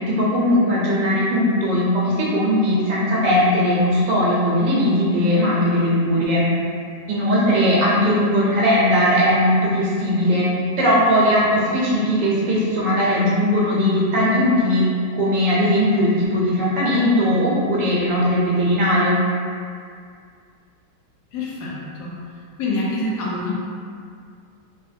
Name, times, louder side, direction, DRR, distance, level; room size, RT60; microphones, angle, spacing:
voice 1, 0.1-6.5 7.1-10.5 10.8-14.8 15.1-19.2, equal, 85° right, -6 dB, 1.3 m, -19 dB
voice 2, 21.3-22.2 22.6-23.6, left 2 dB, 70° left, -5 dB, 1.2 m, -26 dB
3.4 x 2.7 x 2.5 m, 2.2 s
omnidirectional pair, 1.9 m